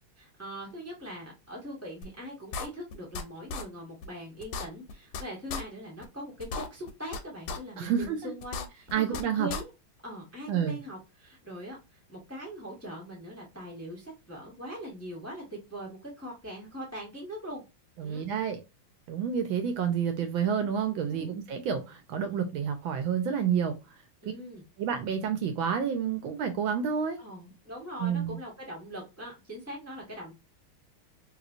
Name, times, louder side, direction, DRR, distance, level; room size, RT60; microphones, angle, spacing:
voice 1, 0.2-9.7 10.0-17.6 18.0-18.2 21.1-21.3 24.2-24.6 27.2-30.3, equal, 10° left, 0.7 m, -41 dB
sound 1, 2.0-2.1 2.5-3.2 3.5-3.6 4.0-4.1 4.4-5.2 5.5-5.6 6.0-6.1 6.4-7.2 7.5-7.6 8.0-8.1 8.4-9.2 9.5-9.6, left 4 dB, 80° left, 1.4 m, -35 dB
voice 2, 7.8-8.3 8.9-9.5 10.5-10.8 18.0-18.6 19.1-23.7 24.8-27.2 28.0-28.4, right 7 dB, 75° right, 1.3 m, -29 dB
3.3 x 3.0 x 2.4 m
omnidirectional pair, 2.4 m